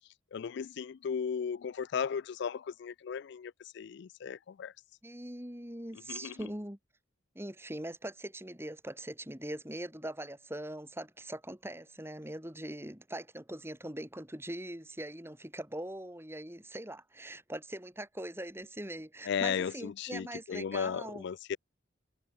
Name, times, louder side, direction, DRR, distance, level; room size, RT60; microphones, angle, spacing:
voice 1, 0.3-4.7 6.1-6.3 19.3-21.6, left 7 dB, 55° left, 0.3 m, -35 dB
voice 2, 5.0-6.8 7.3-21.2, right 1 dB, 10° right, 3.0 m, -42 dB
head